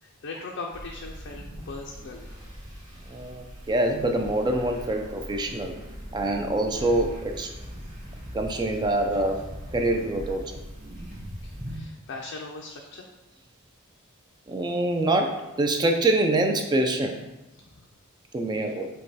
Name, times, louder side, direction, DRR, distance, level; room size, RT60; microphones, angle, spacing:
voice 1, 0.0-2.5 7.8-7.9 11.4-13.1 17.6-17.9 18.6-18.7, left 3 dB, 60° left, 0 dB, 0.4 m, -40 dB
sound 1, 0.7-11.8, equal, 40° right, 1.5 m, -41 dB
voice 2, 3.1-5.7 6.1-7.5 8.3-9.4 9.7-10.6 14.5-17.2 18.3-18.9, right 2 dB, 20° right, 4 dB, 0.3 m, -25 dB
5.1 x 2.2 x 4.1 m, 1.0 s
head